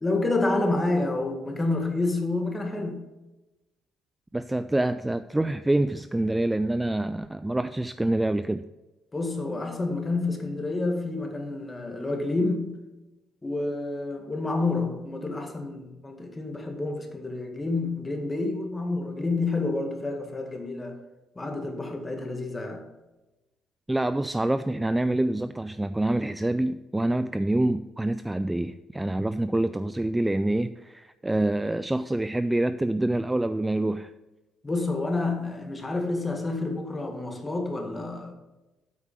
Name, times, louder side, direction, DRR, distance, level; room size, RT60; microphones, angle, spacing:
voice 1, 0.0-3.1 9.1-12.8 13.4-21.0 21.4-22.9 34.6-38.3, left 2 dB, 20° left, 1.8 m, -29 dB
voice 2, 4.3-8.7 23.9-34.1, right 1 dB, 10° right, 0.3 m, -26 dB
8.4 x 4.9 x 7.3 m
cardioid pair, 100°, 0 cm